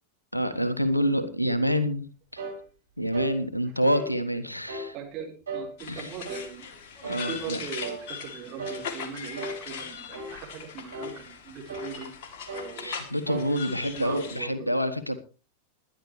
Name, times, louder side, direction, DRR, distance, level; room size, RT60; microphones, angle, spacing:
voice 1, 0.3-2.4 3.0-4.9 5.9-6.1 7.0-7.6 12.8-15.2, equal, 85° left, 11 dB, 1.3 m, -27 dB
sound 1, 2.4-2.6 3.1-3.4 3.9-4.1 4.7-4.9 5.5-5.7 6.2-6.5 7.0-7.3 7.8-8.0 8.6-8.8 9.4-9.6 10.1-10.4 10.9-11.2 11.7-11.9 12.5-12.7 13.3-13.5 14.0-14.3, right 2 dB, 70° right, 5.8 m, -36 dB
voice 2, 4.9-6.7 7.3-12.1 12.5-12.9 13.6-14.7, right 6 dB, 35° right, 1 dB, 4.5 m, -40 dB
sound 2, 5.8-14.4, left 6 dB, 50° left, 2.7 m, -40 dB
21.0 x 11.0 x 3.2 m, 0.34 s
figure-of-eight pair, 90°, 0 cm